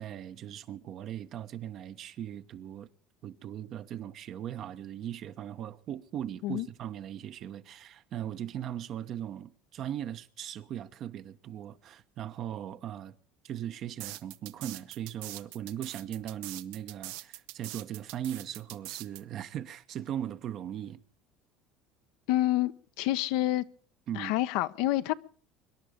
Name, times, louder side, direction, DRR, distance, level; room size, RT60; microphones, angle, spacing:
voice 1, 0.0-2.9 3.2-13.2 13.4-21.0 24.1-24.3, right 10 dB, 50° right, 1.1 m, -39 dB
sound 1, 14.0-19.2, right 15 dB, 75° right, 0.8 m, -42 dB
voice 2, 22.3-23.6 24.1-25.1, left 15 dB, 75° left, 0.8 m, -28 dB
25.0 x 11.0 x 5.1 m
supercardioid pair, 95°, 0 cm